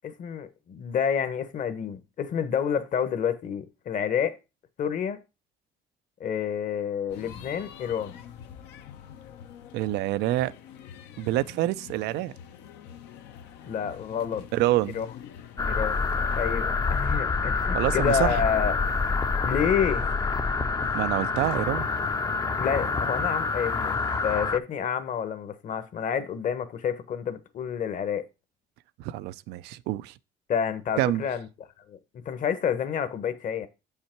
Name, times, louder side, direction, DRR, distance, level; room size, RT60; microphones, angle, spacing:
voice 1, 0.0-4.4 4.8-5.2 6.2-8.1 13.7-14.4 14.9-15.1 15.7-16.0 16.4-18.7 19.4-20.1 22.6-28.3 30.5-31.5 31.9-32.0 32.2-33.7, left 8 dB, 50° left, 1.1 m, -29 dB
sound 1, 7.1-24.4, left 9 dB, 85° left, 0.9 m, -46 dB
voice 2, 9.7-10.5 11.2-12.3 14.5-15.0 17.7-18.4 20.9-21.9 29.0-30.1 31.0-31.2, right 15 dB, 85° right, 0.5 m, -27 dB
sound 2, 15.6-24.6, left 4 dB, 20° left, 0.5 m, -27 dB
7.3 x 5.6 x 4.4 m
cardioid pair, 110°, 17 cm